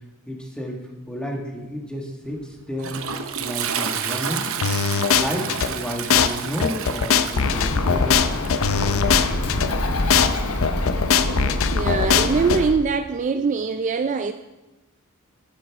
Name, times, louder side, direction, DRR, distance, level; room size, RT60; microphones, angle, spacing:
voice 1, 0.3-3.0 3.4-4.6 5.1-8.2, equal, 5° left, 1.6 m, -31 dB
Toilet flush, 2.3-10.6, right 7 dB, 65° right, 0.8 m, -31 dB
sound 1, 4.6-5.7 6.1-6.3 6.6-9.7 10.1-10.3 10.6-12.6, left 7 dB, 65° left, 0.5 m, -20 dB
Bird, 7.3-12.8, left 1 dB, 80° left, 1.0 m, -25 dB
voice 2, 11.7-14.3, right 5 dB, 35° right, 0.3 m, -23 dB
11.5 x 10.5 x 3.5 m
head